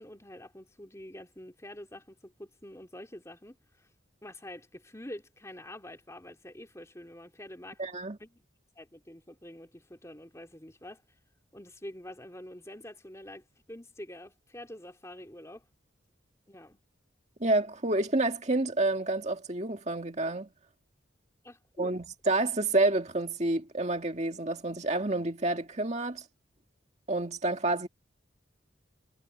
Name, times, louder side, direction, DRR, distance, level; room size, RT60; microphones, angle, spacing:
voice 1, 0.0-3.9 4.2-7.8 8.2-8.4 8.7-11.0 11.5-15.7 16.5-16.8 21.4-21.9, left 1 dB, 15° left, 3.2 m, -46 dB
voice 2, 7.8-8.2 17.4-20.5 21.8-26.2 27.1-27.9, right 2 dB, 35° right, 2.0 m, -29 dB
head